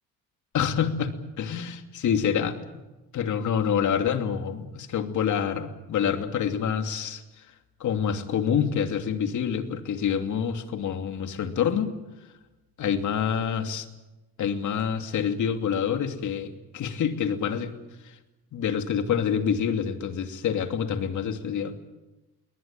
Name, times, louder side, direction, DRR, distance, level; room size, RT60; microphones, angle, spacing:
voice 1, 0.5-2.5 3.1-7.4 7.8-11.9 12.8-13.9 14.4-17.7 18.0-18.2 18.5-21.7, left 7 dB, 60° left, 6 dB, 2.8 m, -27 dB
23.0 x 19.0 x 9.0 m, 1.1 s
supercardioid pair, 90°, 34 cm